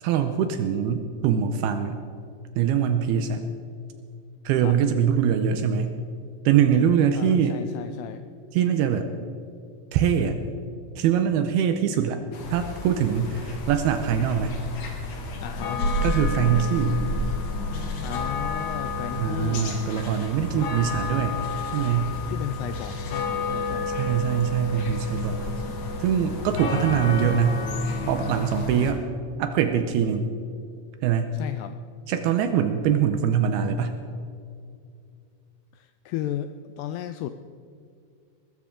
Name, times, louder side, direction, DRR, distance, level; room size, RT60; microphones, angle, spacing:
voice 1, 0.0-2.0 2.6-3.5 4.5-6.0 6.5-7.6 8.5-9.1 9.9-10.4 11.0-12.2 12.5-14.6 16.0-17.0 19.1-21.4 21.7-22.1 23.9-25.4 26.0-27.6 28.1-29.0 29.4-30.3 31.0-31.3 32.1-34.0, right 8 dB, 85° right, 7 dB, 2.3 m, -23 dB
voice 2, 7.1-8.2 15.4-15.8 18.0-19.7 20.6-20.7 22.3-23.9 31.4-31.8 35.8-37.3, left 11 dB, 85° left, 9 dB, 2.4 m, -34 dB
sound 1, 12.3-28.9, left 2 dB, 55° left, 2.4 m, -30 dB
sound 2, 17.2-18.0 18.3-19.7 20.0-20.2 20.5-22.4 22.7-24.0 24.3-24.6 24.9-25.9, right 2 dB, 50° right, 3.0 m, -46 dB
21.0 x 13.5 x 3.7 m, 2.4 s
omnidirectional pair, 5.1 m